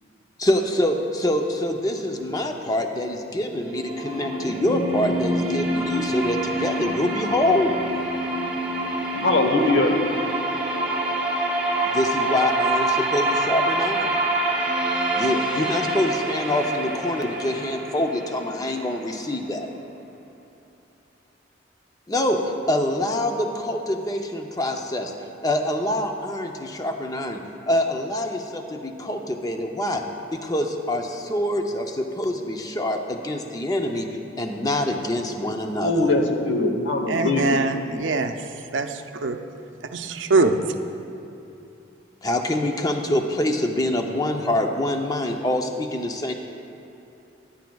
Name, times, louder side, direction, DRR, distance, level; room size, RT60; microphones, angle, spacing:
voice 1, 0.4-7.8 11.9-14.1 15.2-19.7 22.1-22.4 22.7-25.1 25.4-27.4 27.7-30.0 30.3-34.1 34.4-36.1 42.2-46.3, left 1 dB, 20° left, 4 dB, 0.6 m, -25 dB
sound 1, 3.5-19.4, right 1 dB, 5° right, 1.6 m, -26 dB
voice 2, 9.1-9.9 35.8-37.6, left 2 dB, 90° left, 3 dB, 1.0 m, -21 dB
voice 3, 37.1-38.3 38.7-38.9 39.2-39.4 39.9-40.6, right 3 dB, 85° right, 6 dB, 0.5 m, -22 dB
15.5 x 10.5 x 2.3 m, 2.8 s
head